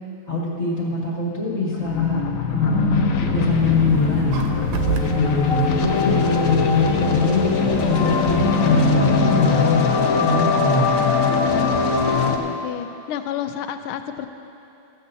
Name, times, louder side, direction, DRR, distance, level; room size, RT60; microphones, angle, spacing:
voice 1, 0.3-4.4 5.1-9.9 10.1-10.9, left 2 dB, 35° left, -5 dB, 1.9 m, -22 dB
sound 1, 1.7-12.4, left 5 dB, 60° left, 0.9 m, -21 dB
sound 2, 3.6-8.9, right 8 dB, 75° right, 1.4 m, -31 dB
voice 2, 12.1-14.3, left 9 dB, 85° left, 8 dB, 1.5 m, -31 dB
15.0 x 14.5 x 2.7 m, 2.9 s
omnidirectional pair, 2.3 m